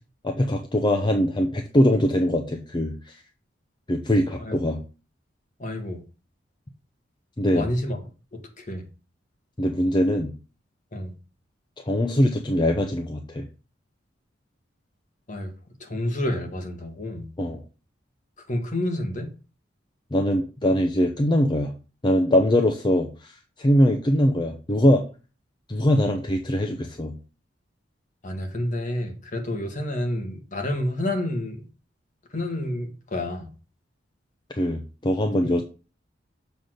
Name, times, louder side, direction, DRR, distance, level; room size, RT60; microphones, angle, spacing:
voice 1, 0.2-3.2 3.9-4.8 7.4-7.7 9.6-10.3 11.9-13.5 17.4-17.6 20.1-21.7 22.0-25.0 25.7-27.1 34.5-35.6, equal, 25° left, 0.7 m, -22 dB
voice 2, 5.6-6.0 7.4-8.0 8.6-8.8 10.9-11.1 15.3-15.5 15.8-17.3 18.5-19.3 28.2-31.7 32.3-33.5 35.4-35.5, left 1 dB, 45° left, 1.6 m, -29 dB
7.0 x 3.9 x 6.4 m
head